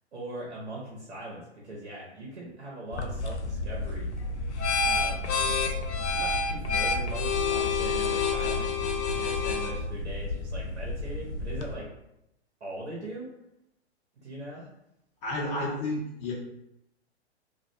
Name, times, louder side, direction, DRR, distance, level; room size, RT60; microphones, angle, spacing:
voice 1, 0.1-4.1 4.8-5.3 6.1-8.7 9.1-11.9 12.6-13.3 14.2-14.7, right 1 dB, 85° right, -4 dB, 0.8 m, -40 dB
sound 1, 2.9-11.7, left 4 dB, 85° left, 0.5 m, -29 dB
voice 2, 15.2-16.3, left 1 dB, 30° left, -5 dB, 0.5 m, -31 dB
2.4 x 2.2 x 2.6 m, 0.83 s
figure-of-eight pair, 115°, 33 cm